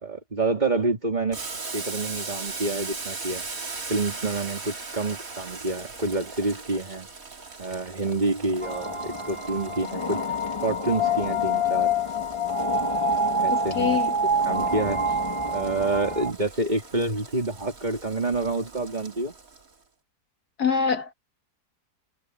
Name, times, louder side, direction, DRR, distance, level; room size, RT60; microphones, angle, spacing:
voice 1, 0.0-1.4 1.7-3.4 3.9-7.1 7.6-10.3 10.6-11.9 13.4-14.0 14.5-15.0 15.5-19.3, right 2 dB, 25° right, 2.8 m, -28 dB
Boiling, 1.3-19.7, right 4 dB, 60° right, 2.9 m, -40 dB
sound 1, 8.6-16.3, left 1 dB, 20° left, 1.4 m, -26 dB
voice 2, 13.5-14.1 20.6-21.1, left 6 dB, 75° left, 2.5 m, -25 dB
omnidirectional pair, 1.7 m